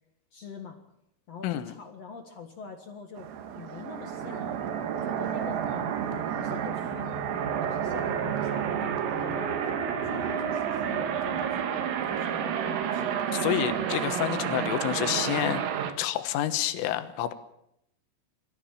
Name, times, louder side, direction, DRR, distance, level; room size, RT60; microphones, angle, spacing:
voice 1, 0.3-0.8 1.3-3.3 3.5-4.5 4.9-5.6 6.0-7.3 7.6-11.7 12.1-13.4 14.3-14.6, left 5 dB, 65° left, 5 dB, 1.6 m, -44 dB
voice 2, 1.4-1.7 13.3-15.7 16.0-17.3, left 12 dB, 85° left, 10 dB, 3.8 m, -28 dB
sound 1, 3.2-15.9, right 8 dB, 90° right, 4.5 m, -30 dB
24.5 x 14.5 x 9.0 m, 0.78 s
omnidirectional pair, 5.7 m